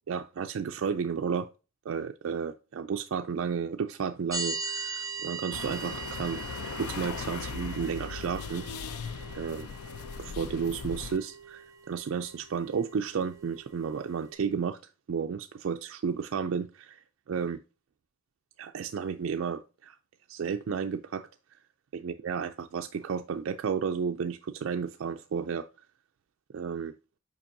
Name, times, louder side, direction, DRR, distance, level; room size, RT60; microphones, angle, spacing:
voice 1, 0.1-1.5 1.9-6.4 6.7-8.6 9.3-9.7 10.2-14.8 15.1-17.6 18.6-20.0 20.3-21.3 21.9-25.7 26.5-26.9, right 6 dB, 65° right, 0.3 m, -32 dB
sound 1, 4.3-14.3, right 4 dB, 15° right, 0.9 m, -41 dB
sound 2, 5.5-11.2, left 6 dB, 90° left, 0.4 m, -39 dB
7.2 x 5.2 x 2.6 m
head